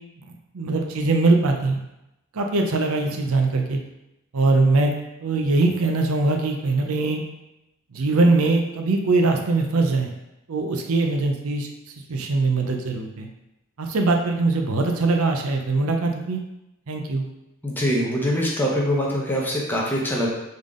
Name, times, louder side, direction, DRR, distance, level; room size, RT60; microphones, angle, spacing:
voice 1, 0.2-1.8 2.3-3.8 4.3-4.9 5.2-7.2 7.9-10.1 10.5-11.7 12.1-13.3 13.8-16.4 16.9-17.3, right 3 dB, 70° right, 3 dB, 0.6 m, -21 dB
voice 2, 17.6-20.3, equal, 10° left, -4 dB, 0.8 m, -23 dB
3.8 x 3.6 x 3.6 m, 0.90 s
head